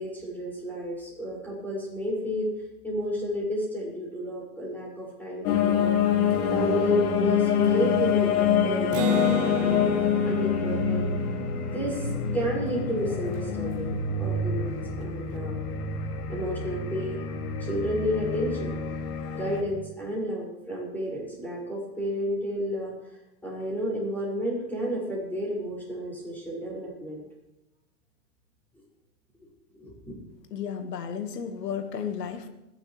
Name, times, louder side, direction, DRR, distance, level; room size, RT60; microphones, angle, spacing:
voice 1, 0.0-2.5 2.8-6.0 6.5-11.1 11.7-15.6 16.3-17.2 17.6-18.8 19.3-22.9 23.4-27.2 29.8-30.1, equal, 5° left, -4 dB, 6.0 m, -31 dB
sound 1, 5.4-19.6, left 7 dB, 65° left, 2.5 m, -26 dB
Acoustic guitar, 8.9-12.6, right 5 dB, 30° right, 1.0 m, -34 dB
voice 2, 30.5-32.5, left 7 dB, 90° left, 7 dB, 1.7 m, -33 dB
29.5 x 11.5 x 3.3 m, 0.93 s
hypercardioid pair, 145°, 47 cm